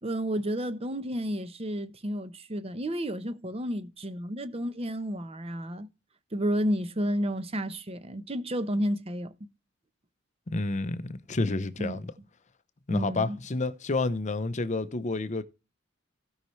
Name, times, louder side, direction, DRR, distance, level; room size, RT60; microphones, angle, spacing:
voice 1, 0.0-5.9 6.3-9.3 11.8-12.0 12.9-13.4, equal, 30° right, 0.8 m, -31 dB
voice 2, 10.5-12.1 12.9-15.4, left 3 dB, 35° left, 0.7 m, -29 dB
16.5 x 5.6 x 3.1 m
head